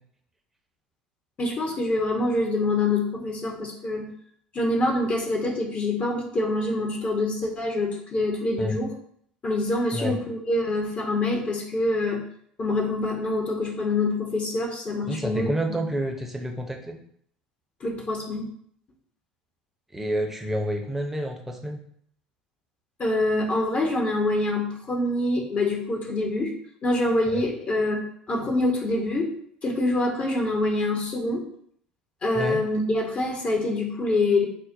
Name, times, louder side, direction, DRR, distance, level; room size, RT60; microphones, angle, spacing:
voice 1, 1.4-4.1 4.5-8.9 9.4-12.2 12.6-15.5 17.8-18.5 23.0-26.5 26.8-29.3 29.6-31.4 32.2-34.4, left 2 dB, 30° left, 0 dB, 0.8 m, -25 dB
voice 2, 15.1-17.0 19.9-21.8 27.3-27.4 32.3-32.6, equal, 5° right, 1 dB, 0.7 m, -29 dB
5.4 x 2.1 x 2.6 m, 0.65 s
figure-of-eight pair, 65°, 4 cm